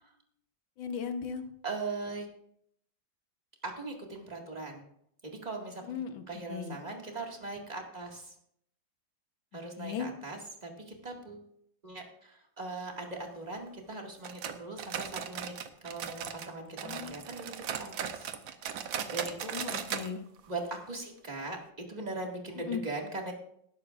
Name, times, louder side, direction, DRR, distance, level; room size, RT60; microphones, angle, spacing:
voice 1, 0.8-1.4 5.9-6.2 6.5-6.8 9.8-10.1 16.8-17.2 19.5-20.2 22.7-22.8, left 7 dB, 75° left, 7 dB, 1.8 m, -36 dB
voice 2, 1.6-2.3 3.6-4.8 5.2-5.8 6.3-8.3 9.5-11.5 11.8-15.5 15.8-18.3 19.1-19.7 20.5-21.6 21.9-23.3, right 3 dB, 20° right, 0 dB, 2.0 m, -40 dB
sound 1, 14.2-16.5 16.8-20.1 20.4-20.5 20.9-21.0 21.5-21.6, right 8 dB, 80° right, 1.6 m, -38 dB
19.0 x 11.0 x 2.5 m, 0.71 s
omnidirectional pair, 2.1 m